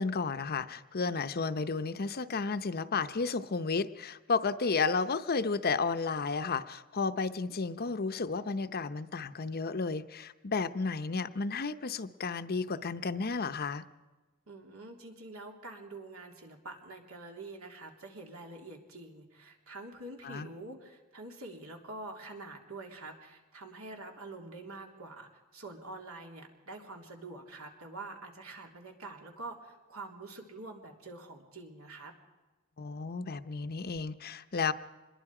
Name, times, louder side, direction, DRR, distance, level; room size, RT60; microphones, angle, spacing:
voice 1, 0.0-13.8 20.2-20.5 32.8-34.7, left 4 dB, 45° left, 11 dB, 0.7 m, -32 dB
voice 2, 14.5-32.1, right 2 dB, 75° right, 2 dB, 3.4 m, -46 dB
25.5 x 21.5 x 4.9 m, 1.2 s
head